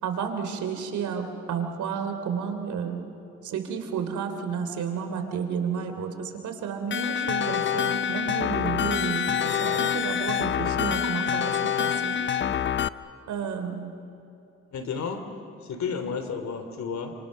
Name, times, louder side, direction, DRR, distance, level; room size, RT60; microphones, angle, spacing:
voice 1, 0.0-3.0 3.4-12.2 13.3-13.9, right 7 dB, 75° right, 5 dB, 3.3 m, -31 dB
sound 1, 6.9-12.9, left 8 dB, 40° left, 0.7 m, -26 dB
voice 2, 14.7-15.3 15.6-17.1, left 5 dB, 65° left, 7 dB, 3.0 m, -32 dB
29.0 x 26.0 x 6.6 m, 2.8 s
cardioid pair, 90°, 30 cm